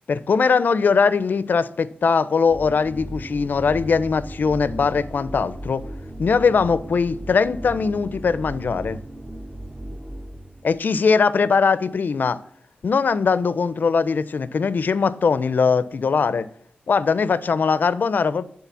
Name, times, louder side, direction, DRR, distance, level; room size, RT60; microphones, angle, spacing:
voice 1, 0.1-5.8 6.2-9.0 10.6-12.4 12.8-16.5 16.9-18.4, left 5 dB, 60° left, 0.4 m, -20 dB
sound 1, 2.5-10.8, right 1 dB, 15° right, 0.4 m, -36 dB
8.4 x 3.8 x 6.8 m
wide cardioid pair, 130°, 4 cm